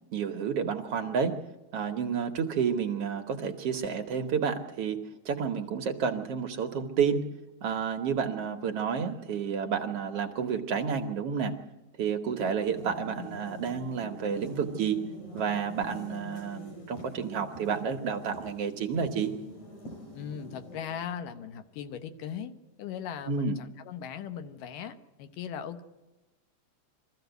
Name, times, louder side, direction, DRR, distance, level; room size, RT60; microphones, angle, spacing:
voice 1, 0.1-1.4 1.7-5.0 5.2-7.2 7.6-11.5 12.0-15.0 15.3-19.3 23.3-23.5, right 6 dB, 65° right, 6 dB, 1.5 m, -30 dB
sound 1, 12.3-21.2, left 1 dB, 60° left, 7.5 m, -45 dB
voice 2, 20.1-25.8, left 8 dB, 75° left, 9 dB, 2.6 m, -39 dB
23.0 x 14.5 x 8.0 m, 1.1 s
omnidirectional pair, 3.9 m